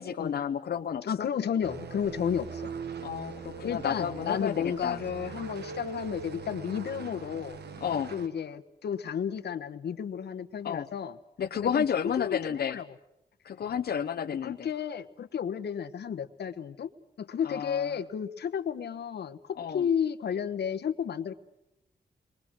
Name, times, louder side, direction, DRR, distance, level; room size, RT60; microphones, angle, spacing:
voice 1, 0.0-1.3 3.0-5.0 7.8-8.1 10.6-10.9 11.4-12.8 13.4-14.7 17.4-18.0 19.6-19.9, left 8 dB, 70° left, 4 dB, 1.0 m, -31 dB
voice 2, 1.0-2.7 3.6-7.6 8.1-11.2 11.6-11.8 12.2-12.8 14.2-16.9 17.2-21.3, left 8 dB, 85° left, 9 dB, 1.3 m, -32 dB
sound 1, 1.6-8.3, right 5 dB, 75° right, 1.4 m, -41 dB
28.5 x 23.0 x 6.2 m, 0.83 s
wide cardioid pair, 115°, 17 cm